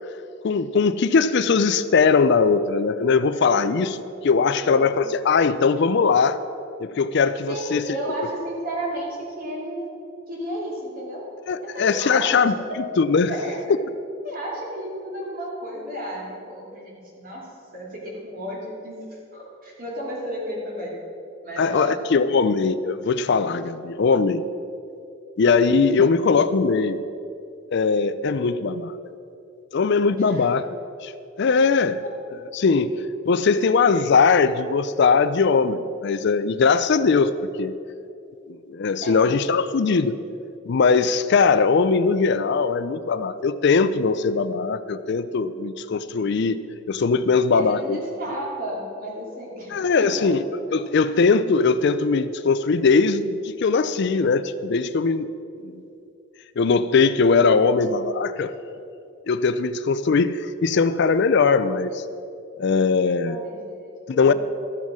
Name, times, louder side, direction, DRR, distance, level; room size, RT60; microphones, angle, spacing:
voice 1, 0.4-6.4 6.8-7.8 11.5-12.5 13.0-13.3 21.6-24.4 25.4-27.0 27.7-29.0 29.7-30.7 31.0-31.1 31.4-32.0 32.5-32.9 33.2-37.7 38.5-40.2 40.7-46.6 46.9-48.0 49.7-50.4 50.7-55.3 55.6-55.8 56.6-58.5 59.3-62.0 62.6-63.4 64.1-64.3, left 4 dB, 55° left, 13 dB, 0.4 m, -20 dB
voice 2, 4.5-5.0 7.5-9.9 10.3-11.3 11.6-12.9 13.3-13.7 14.2-20.9 21.4-22.4 30.2-30.5 39.0-39.3 47.5-50.3 57.5-57.8 63.2-64.3, right 1 dB, 45° right, -3 dB, 2.9 m, -33 dB
13.5 x 7.3 x 6.2 m, 2.6 s
head